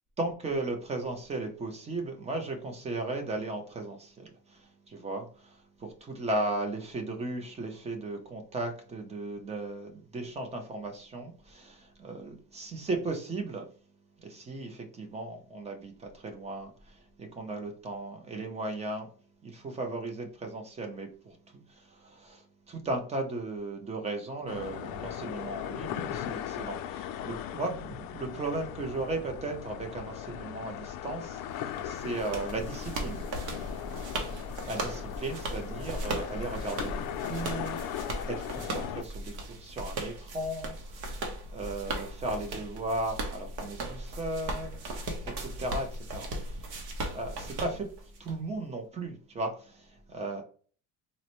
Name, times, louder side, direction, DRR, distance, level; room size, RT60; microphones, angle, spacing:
voice 1, 0.2-13.7 14.2-19.1 19.4-33.2 34.7-37.8 38.3-45.0 45.4-47.9 48.2-50.4, right 2 dB, 20° right, 0.6 m, -36 dB
sound 1, 24.5-39.0, left 10 dB, 70° left, 0.5 m, -38 dB
sound 2, 31.8-48.3, right 2 dB, 55° right, 0.9 m, -37 dB
3.9 x 2.1 x 2.9 m
cardioid pair, 165°, 36 cm